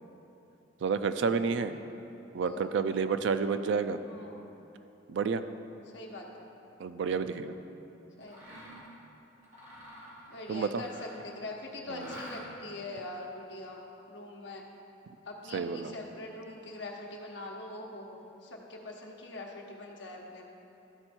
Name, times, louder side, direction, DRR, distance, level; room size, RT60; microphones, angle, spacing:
voice 1, 0.8-1.8 2.3-4.0 5.1-5.4 6.8-7.5 10.5-10.8 11.9-12.2 15.5-15.9, right 5 dB, 60° right, 10 dB, 0.3 m, -30 dB
voice 2, 2.4-2.9 4.0-4.4 5.9-6.5 8.2-8.4 10.3-14.6 15.3-20.5, left 2 dB, 60° left, 0 dB, 1.0 m, -43 dB
Mechanisms, 8.2-8.9 9.4-11.3 11.9-12.7, equal, 35° right, 1.9 m, -48 dB
13.0 x 4.4 x 4.3 m, 2.8 s
head